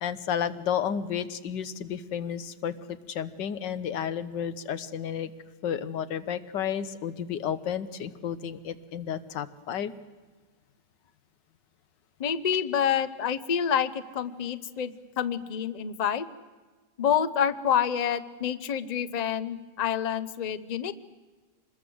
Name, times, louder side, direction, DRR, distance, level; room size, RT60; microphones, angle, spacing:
voice 1, 0.0-5.3 5.6-9.9, left 8 dB, 85° left, 12 dB, 1.7 m, -32 dB
voice 2, 12.2-16.3 17.0-20.9, left 8 dB, 45° left, 13 dB, 0.5 m, -28 dB
25.0 x 20.5 x 7.8 m, 1.3 s
omnidirectional pair, 1.9 m